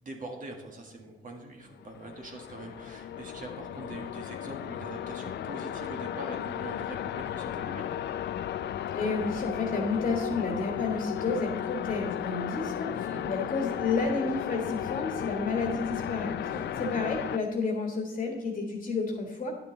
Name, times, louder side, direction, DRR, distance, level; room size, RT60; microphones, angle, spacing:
voice 1, 0.0-7.9 12.9-13.2 16.4-16.8, right 2 dB, 40° right, 1 dB, 1.6 m, -43 dB
sound 1, 1.8-17.4, left 11 dB, 60° left, 0.4 m, -35 dB
voice 2, 8.9-16.4 16.8-19.5, left 3 dB, 40° left, 1 dB, 1.6 m, -31 dB
10.5 x 6.8 x 3.9 m, 1.1 s
cardioid pair, 90°, 20 cm